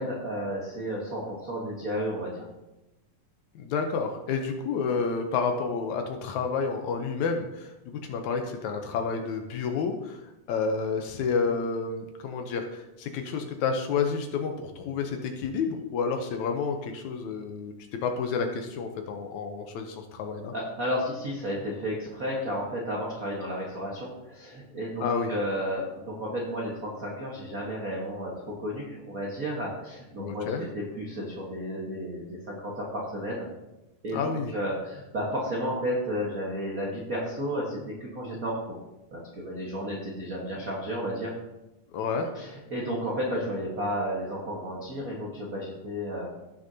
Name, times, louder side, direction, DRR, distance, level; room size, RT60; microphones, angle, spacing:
voice 1, 0.0-2.5 20.5-28.3 28.6-33.5 34.0-38.8 39.1-41.3 42.3-46.3, equal, 55° right, -3 dB, 0.9 m, -32 dB
voice 2, 3.6-10.2 10.5-17.7 18.0-20.5 25.0-25.3 30.2-30.6 34.1-34.5 41.9-42.3, left 5 dB, 70° left, 5 dB, 2.0 m, -30 dB
15.5 x 6.3 x 2.8 m, 0.98 s
omnidirectional pair, 3.7 m